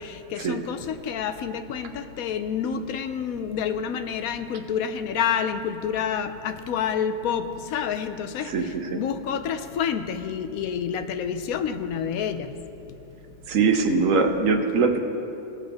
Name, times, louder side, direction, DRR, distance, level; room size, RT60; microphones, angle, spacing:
voice 1, 0.0-12.5, left 7 dB, 75° left, 8 dB, 1.0 m, -28 dB
voice 2, 8.5-9.0 13.5-15.0, right 4 dB, 65° right, 5 dB, 1.1 m, -22 dB
18.5 x 7.0 x 3.5 m, 2.9 s
omnidirectional pair, 1.6 m